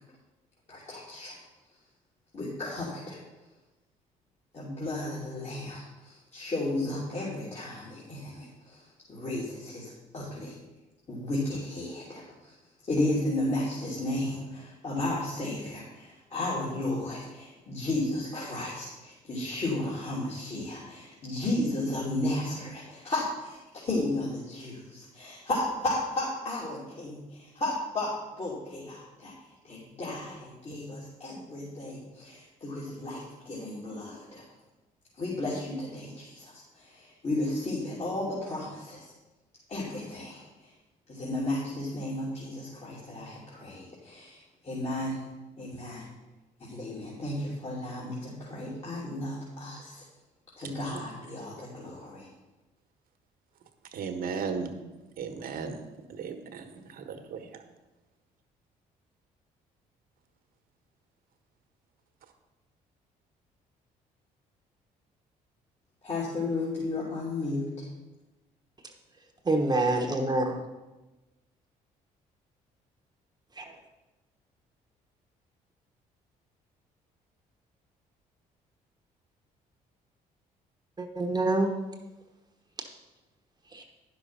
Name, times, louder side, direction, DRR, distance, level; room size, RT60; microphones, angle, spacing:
voice 1, 0.7-1.4 2.3-3.2 4.5-8.8 9.1-10.5 11.1-12.2 12.9-28.1 28.4-29.3 29.6-34.4 35.2-36.5 36.8-39.0 39.7-40.4 41.1-44.4 44.6-45.2 45.6-46.0 46.6-50.0 50.6-52.3 66.0-67.8, left 2 dB, 40° left, -7 dB, 3.0 m, -33 dB
voice 2, 50.6-51.0 53.9-54.7 55.2-55.8 56.1-57.5, right 5 dB, 65° right, 5 dB, 1.3 m, -36 dB
voice 3, 69.5-70.6 73.6-73.7 81.0-81.7 83.7-83.8, right 2 dB, 25° right, 3 dB, 1.2 m, -26 dB
10.0 x 6.2 x 5.7 m, 1.1 s
supercardioid pair, 70°, 16 cm